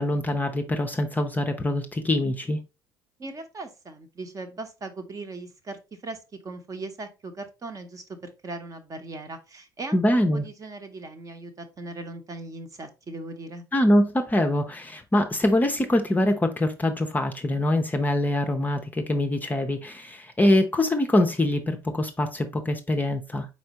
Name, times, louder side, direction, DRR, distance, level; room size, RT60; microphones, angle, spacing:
voice 1, 0.0-2.6 9.9-10.4 13.7-23.5, left 1 dB, 15° left, 0.6 m, -24 dB
voice 2, 3.2-13.6, right 2 dB, 30° right, 0.9 m, -39 dB
4.3 x 4.3 x 2.9 m
figure-of-eight pair, 60°, 12 cm